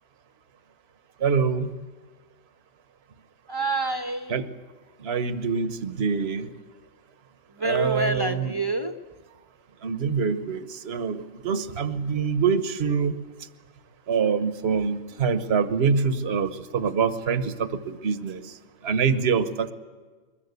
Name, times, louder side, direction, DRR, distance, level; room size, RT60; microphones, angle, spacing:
voice 1, 1.2-1.8 4.3-4.5 5.0-6.5 7.6-8.5 9.8-13.2 14.1-18.5 18.8-19.7, right 6 dB, 50° right, 10 dB, 1.3 m, -25 dB
voice 2, 3.5-4.5 7.5-8.9, right 2 dB, 20° right, 6 dB, 1.0 m, -27 dB
23.0 x 21.0 x 8.1 m, 1.4 s
omnidirectional pair, 1.4 m